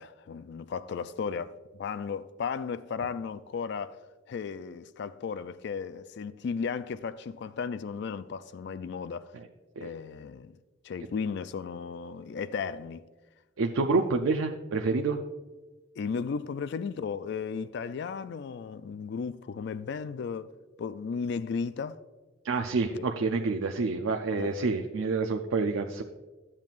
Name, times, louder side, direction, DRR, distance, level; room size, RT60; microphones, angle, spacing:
voice 1, 0.0-4.0 4.3-9.3 9.8-10.5 10.8-13.0 16.0-20.5 20.8-22.0 22.9-23.1 24.4-24.5, left 5 dB, 60° left, 0.3 m, -35 dB
voice 2, 13.6-15.2 22.4-26.0, right 3 dB, 85° right, 0.5 m, -28 dB
12.0 x 7.3 x 2.4 m
head